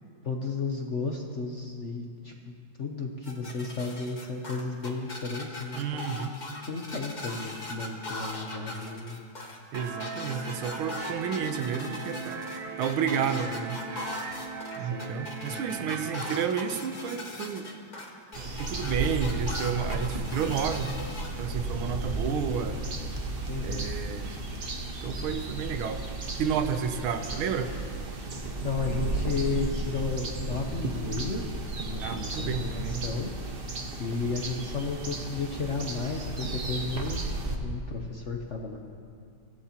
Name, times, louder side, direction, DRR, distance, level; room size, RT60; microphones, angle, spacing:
voice 1, 0.2-6.4 6.7-9.2 14.8-15.1 23.5-23.9 28.6-31.4 31.9-33.3 34.0-37.2 37.6-38.8, left 4 dB, 50° left, 1 dB, 0.9 m, -33 dB
sound 1, 3.2-21.3, left 2 dB, 25° left, 1.2 m, -40 dB
voice 2, 5.7-6.3 9.7-12.4 12.8-13.8 14.8-17.7 18.6-20.9 21.4-22.8 23.6-24.3 25.0-26.0 26.4-27.7 32.0-33.0, right 7 dB, 85° right, 8 dB, 1.7 m, -31 dB
sound 2, 9.7-16.4, right 4 dB, 60° right, 1.2 m, -39 dB
sound 3, 18.3-37.6, right 2 dB, 35° right, 1.0 m, -34 dB
23.5 x 15.5 x 2.9 m, 2.3 s
omnidirectional pair, 2.2 m